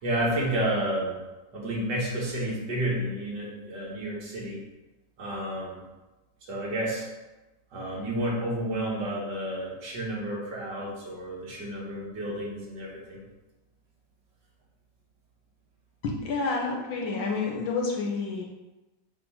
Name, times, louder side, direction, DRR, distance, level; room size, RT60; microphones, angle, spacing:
voice 1, 0.0-1.2 1.5-4.6 5.2-5.8 6.4-7.1 7.7-13.2, right 1 dB, 70° right, -3 dB, 2.2 m, -31 dB
voice 2, 16.0-18.4, left 4 dB, 85° left, -2 dB, 1.9 m, -29 dB
7.4 x 3.1 x 5.6 m, 1.1 s
omnidirectional pair, 2.0 m